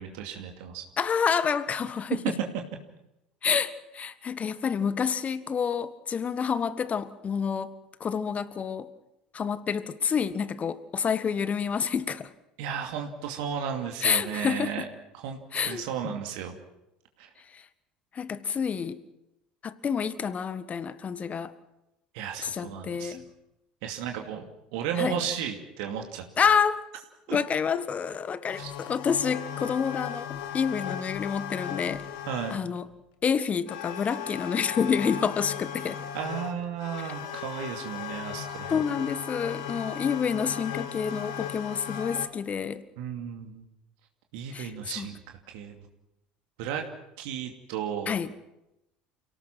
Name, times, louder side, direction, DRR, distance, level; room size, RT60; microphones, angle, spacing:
voice 1, 0.0-0.8 2.2-2.3 12.6-14.8 15.1-16.6 17.2-17.3 22.1-23.2 23.8-26.2 27.3-27.4 28.6-28.7 32.3-32.6 36.1-38.8 43.0-43.6 44.3-45.2 45.5-45.7 46.6-46.9 47.2-48.1, right 8 dB, 65° right, 2.6 m, -34 dB
voice 2, 1.0-2.3 3.4-7.7 8.0-8.9 9.3-12.3 14.0-14.8 15.5-16.1 17.5-17.6 18.1-19.0 19.6-21.5 22.4-23.2 25.0-25.2 26.4-26.9 27.3-32.0 32.5-32.9 33.2-36.0 38.7-42.8 44.5-44.7 45.0-45.1 48.1-48.3, left 6 dB, 35° left, 1.5 m, -28 dB
sound 1, 28.5-32.8 33.7-42.3, left 9 dB, 65° left, 1.8 m, -37 dB
29.0 x 18.0 x 6.0 m
figure-of-eight pair, 65°, 4 cm